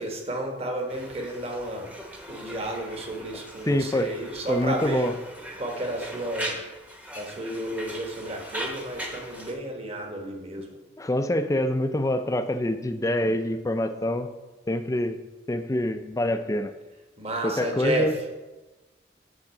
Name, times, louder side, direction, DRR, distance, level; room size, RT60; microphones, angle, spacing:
voice 1, 0.0-1.9 2.3-5.1 5.6-6.6 7.1-10.8 17.2-18.1, right 1 dB, 35° right, 1 dB, 1.2 m, -32 dB
Conversation, 0.9-9.5, right 1 dB, 10° right, 0.9 m, -40 dB
voice 2, 3.7-4.1 4.5-5.1 11.0-14.3 14.7-15.2 15.5-16.7 17.4-18.1, left 1 dB, 20° left, 9 dB, 0.4 m, -26 dB
8.7 x 3.6 x 6.4 m, 1.1 s
head